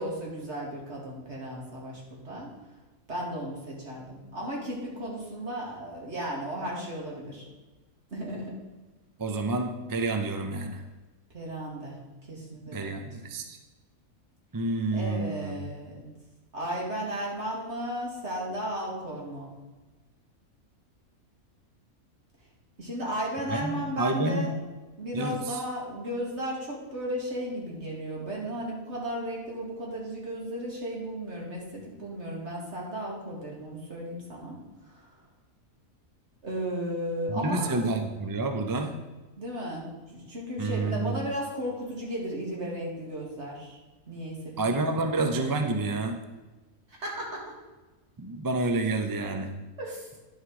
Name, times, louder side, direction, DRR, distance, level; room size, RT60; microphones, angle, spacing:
voice 1, 0.0-2.5 3.1-7.5 8.1-8.5 11.3-12.0 12.3-13.1 14.9-16.0 16.5-19.5 22.8-24.5 25.0-34.6 34.8-35.1 36.4-37.8 39.4-43.8 44.1-44.9 46.9-47.4 49.8-50.1, equal, 50° right, -3 dB, 2.6 m, -35 dB
voice 2, 9.2-10.8 12.7-13.6 14.5-15.6 23.5-24.5 25.1-25.6 37.3-38.9 40.6-41.2 44.6-46.2 48.2-49.6, right 2 dB, 25° right, 5 dB, 0.4 m, -29 dB
10.5 x 6.1 x 4.8 m, 1.2 s
omnidirectional pair, 1.5 m